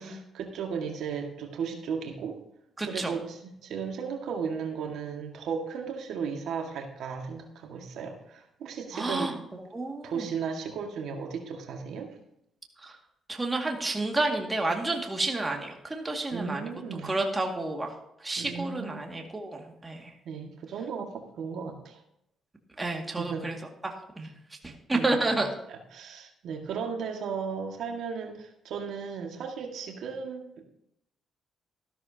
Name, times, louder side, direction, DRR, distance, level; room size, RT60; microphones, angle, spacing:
voice 1, 0.0-2.4 2.9-9.3 10.0-12.1 16.3-17.2 18.4-19.1 20.3-22.0 23.2-23.5 24.9-25.1 25.7-30.6, right 6 dB, 75° right, 2 dB, 1.8 m, -35 dB
voice 2, 2.8-3.1 8.9-9.4 9.7-10.3 12.8-13.0 13.3-16.7 17.1-17.9 18.2-20.1 22.8-23.6 23.8-24.3 24.6-25.5, right 2 dB, 20° right, 1 dB, 2.1 m, -30 dB
13.5 x 12.5 x 2.8 m, 0.79 s
cardioid pair, 90°, 0 cm